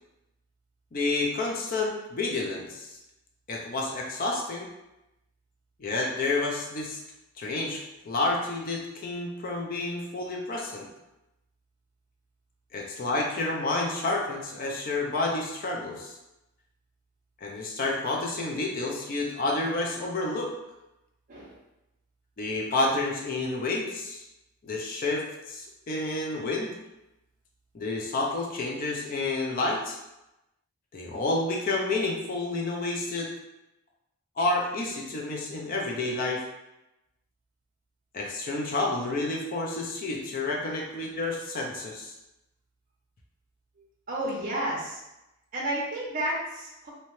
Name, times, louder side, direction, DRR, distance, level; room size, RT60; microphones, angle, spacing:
voice 1, 0.9-3.0 3.5-4.7 5.8-7.0 7.4-10.9 12.7-16.1 17.4-20.5 22.4-24.2 24.6-26.8 27.7-30.0 30.9-33.3 34.4-36.4 38.1-42.1, left 2 dB, 40° left, 0 dB, 0.4 m, -29 dB
voice 2, 44.1-45.0 45.5-46.9, right 1 dB, 40° right, -4 dB, 0.5 m, -31 dB
2.7 x 2.1 x 3.0 m, 0.93 s
head